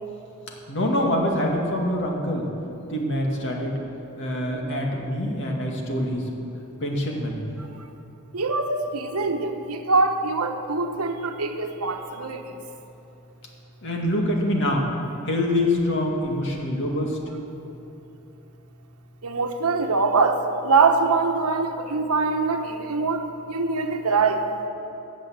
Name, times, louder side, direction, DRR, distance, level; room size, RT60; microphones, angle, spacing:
voice 1, 0.7-2.5 2.9-3.8 4.2-6.5 6.8-7.5 13.8-14.9 15.2-17.2, left 1 dB, 55° left, 0 dB, 2.1 m, -25 dB
voice 2, 8.3-12.4 19.2-23.2 23.5-24.4, right 4 dB, 80° right, 6 dB, 1.2 m, -23 dB
15.5 x 9.0 x 7.7 m, 2.9 s
head